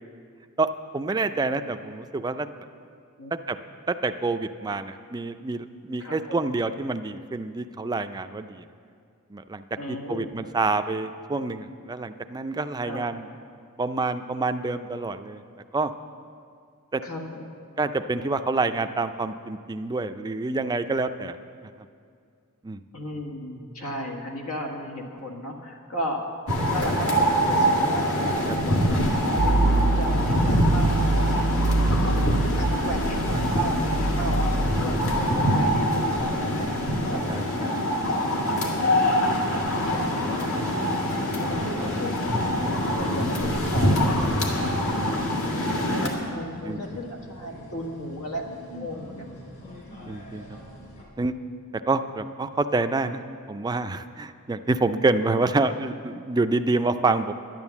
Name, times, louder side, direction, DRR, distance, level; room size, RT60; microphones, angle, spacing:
voice 1, 0.9-2.5 3.5-3.6 3.9-8.6 9.3-13.2 13.8-15.4 15.7-15.9 16.9-17.0 17.8-21.4 22.6-22.8 28.5-28.6 35.2-35.4 37.3-37.8 41.6-41.9 44.6-45.2 45.6-46.1 46.7-46.8 50.1-50.6 51.2-51.3 51.9-53.2 53.5-57.3, right 3 dB, 20° right, 9 dB, 0.4 m, -27 dB
voice 2, 6.0-6.5 9.8-10.4 12.8-13.3 17.0-17.6 22.9-26.2 26.7-28.2 28.6-31.5 32.0-36.7 37.1-37.2 37.9-41.0 41.4-44.2 45.5-45.6 45.9-48.4 48.7-49.3, equal, 85° left, 1 dB, 1.8 m, -35 dB
sound 1, 26.5-46.1, equal, 70° left, 1.9 m, -24 dB
sound 2, 29.4-37.3, right 2 dB, 90° right, 0.9 m, -26 dB
sound 3, 44.6-51.0, equal, 45° left, 3.3 m, -44 dB
11.0 x 10.5 x 7.1 m, 2.3 s
head